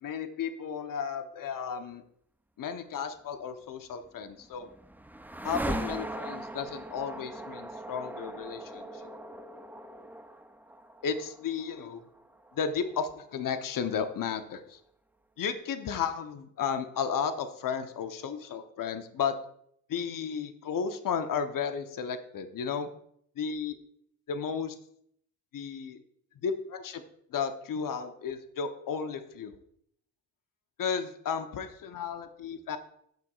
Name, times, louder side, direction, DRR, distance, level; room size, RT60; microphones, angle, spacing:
voice 1, 0.0-2.0 2.6-4.7 5.4-9.1 11.0-12.0 12.5-14.8 15.4-19.3 19.9-22.9 23.4-23.8 24.3-24.8 25.5-26.0 26.4-27.0 27.3-29.6 30.8-32.8, left 6 dB, 50° left, 9 dB, 0.9 m, -33 dB
sound 1, 4.1-14.1, right 1 dB, 5° right, 0.6 m, -40 dB
15.0 x 6.0 x 2.4 m, 0.69 s
hypercardioid pair, 50°, 41 cm